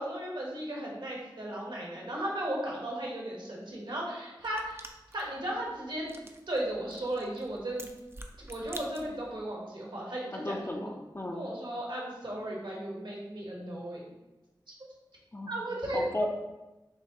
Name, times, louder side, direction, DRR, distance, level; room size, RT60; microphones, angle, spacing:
voice 1, 0.0-4.8 5.1-6.1 6.5-7.9 8.5-10.9 11.3-14.1 15.5-16.3, right 1 dB, 70° right, -3 dB, 1.1 m, -35 dB
sound 1, 4.4-9.4, right 1 dB, 30° right, 0.4 m, -49 dB
voice 2, 10.3-11.4 15.3-15.5 15.9-16.3, left 1 dB, 30° left, 2 dB, 0.5 m, -35 dB
6.2 x 2.2 x 2.8 m, 1.0 s
wide cardioid pair, 50°, 8 cm